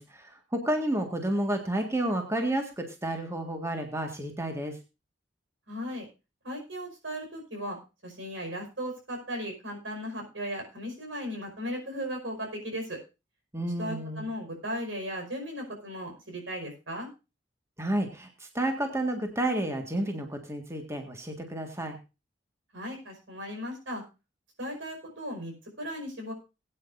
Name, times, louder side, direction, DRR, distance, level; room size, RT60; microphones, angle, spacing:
voice 1, 0.0-4.8 13.5-14.3 17.8-22.0, right 1 dB, 15° right, 4 dB, 1.8 m, -31 dB
voice 2, 5.7-6.1 6.4-7.8 8.0-13.0 13.8-17.1 22.7-24.0 24.6-26.3, equal, 85° right, 3 dB, 5.2 m, -36 dB
20.0 x 9.2 x 2.6 m, 0.28 s
head